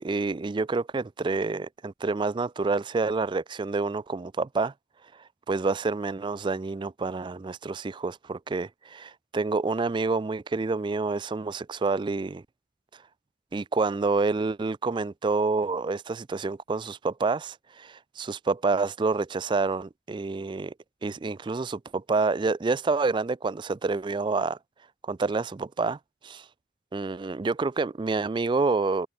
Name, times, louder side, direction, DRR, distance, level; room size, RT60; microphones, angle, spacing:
voice 1, 0.0-4.7 5.5-12.4 13.5-20.7 21.0-24.6 25.1-26.0 26.2-26.5 26.9-29.1, right 3 dB, 25° right, 0.3 m, -28 dB
head